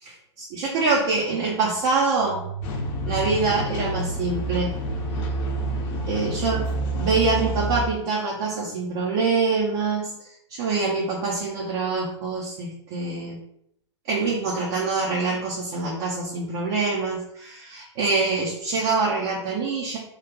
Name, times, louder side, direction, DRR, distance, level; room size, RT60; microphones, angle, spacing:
voice 1, 0.0-2.5 3.1-4.7 6.1-6.6 7.0-13.4 14.0-20.0, right 4 dB, 45° right, -4 dB, 0.8 m, -25 dB
sound 1, 2.6-7.9, right 1 dB, 45° left, 0.8 m, -28 dB
3.1 x 2.4 x 3.7 m, 0.73 s
hypercardioid pair, 110°, 16 cm